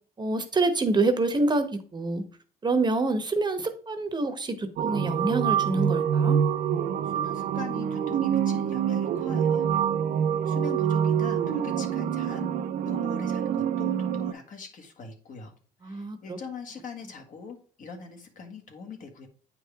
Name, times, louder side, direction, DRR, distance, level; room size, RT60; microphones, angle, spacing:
voice 1, 0.2-1.7 1.9-2.2 2.6-6.4 15.8-16.4, right 3 dB, 25° right, 8 dB, 0.9 m, -26 dB
sound 1, 4.8-14.3, right 8 dB, 60° right, 0.6 m, -26 dB
voice 2, 7.1-9.7 10.4-12.5 12.8-15.5 15.8-19.3, left 4 dB, 50° left, 4 dB, 1.6 m, -41 dB
8.9 x 4.6 x 3.5 m, 0.42 s
cardioid pair, 110°, 17 cm